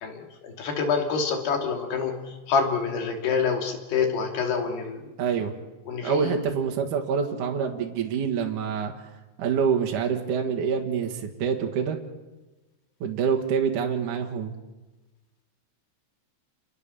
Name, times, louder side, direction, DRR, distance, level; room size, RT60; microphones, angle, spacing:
voice 1, 0.0-5.0 5.9-6.3, left 5 dB, 60° left, 3 dB, 4.6 m, -27 dB
voice 2, 5.2-5.5 6.0-8.9 9.4-12.0 13.0-14.5, right 6 dB, 55° right, 2 dB, 2.4 m, -26 dB
29.0 x 20.5 x 7.0 m, 1.2 s
omnidirectional pair, 5.6 m